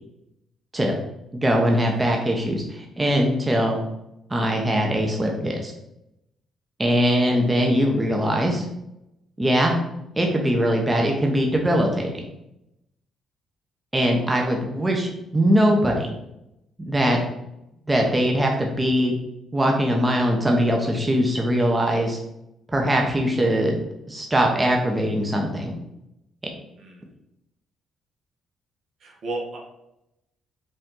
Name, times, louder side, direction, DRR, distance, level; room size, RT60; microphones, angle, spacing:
voice 1, 1.3-3.8 4.3-5.7 6.8-8.6 9.4-9.7 10.2-12.2 13.9-16.1 16.9-17.2 17.9-19.2 19.5-22.2 22.7-23.8 24.1-25.7, equal, 15° right, 1 dB, 0.8 m, -21 dB
voice 2, 7.0-7.7 14.3-14.4 26.8-27.0 29.0-29.6, right 2 dB, 65° right, -1 dB, 1.3 m, -35 dB
5.2 x 2.7 x 3.7 m, 0.86 s
cardioid pair, 90°, 0 cm